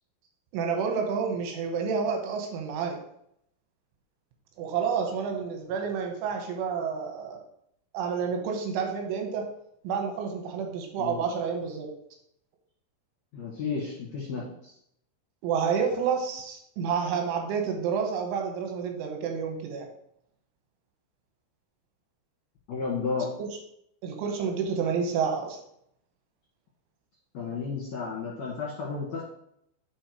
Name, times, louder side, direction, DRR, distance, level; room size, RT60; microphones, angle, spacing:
voice 1, 0.5-3.0 4.6-7.4 7.9-9.4 9.8-11.9 15.4-19.9 23.4-23.5 24.0-25.6, right 6 dB, 90° right, 3 dB, 3.7 m, -29 dB
voice 2, 13.3-14.7 22.7-23.3 27.3-29.2, left 5 dB, 60° left, -4 dB, 1.9 m, -32 dB
8.7 x 4.5 x 4.9 m, 0.72 s
omnidirectional pair, 5.4 m